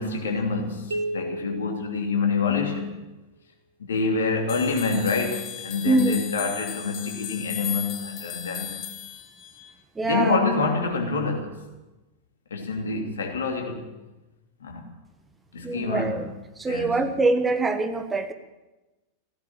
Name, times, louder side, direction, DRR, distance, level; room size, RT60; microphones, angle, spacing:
voice 1, 0.0-3.0 3.9-8.7 10.0-11.6 12.5-13.8 14.6-14.9 15.5-16.1 16.7-17.0, left 4 dB, 65° left, 2 dB, 2.8 m, -26 dB
sound 1, 0.9-2.9, right 1 dB, 70° right, 1.7 m, -34 dB
sound 2, 4.5-9.7, left 10 dB, 45° left, 2.0 m, -36 dB
voice 2, 5.8-6.2 9.9-10.4 15.6-16.3 16.6-18.3, right 3 dB, 15° right, 8 dB, 1.2 m, -24 dB
16.0 x 10.5 x 8.7 m, 1.1 s
figure-of-eight pair, 90°, 0 cm